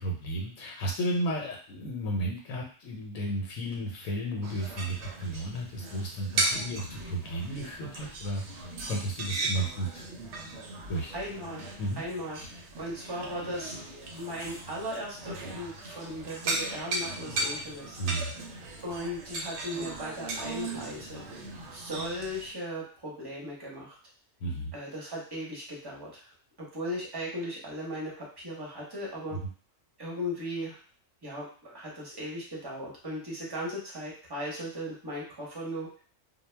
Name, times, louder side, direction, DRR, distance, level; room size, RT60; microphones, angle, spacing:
voice 1, 0.0-8.4 8.9-10.1 10.9-11.1 11.8-12.0 12.4-12.5 18.0-18.3 24.4-24.7 29.3-29.4, right 1 dB, 80° left, -1 dB, 1.0 m, -33 dB
sound 1, 4.4-22.5, right 2 dB, 65° right, 0.8 m, -37 dB
voice 2, 11.1-11.6 12.0-13.7 14.1-18.0 18.8-21.2 21.7-24.0 24.7-26.3 26.6-29.4 30.0-30.8 31.2-36.0, equal, 25° right, -3 dB, 0.6 m, -37 dB
2.3 x 2.1 x 3.2 m, 0.41 s
omnidirectional pair, 1.4 m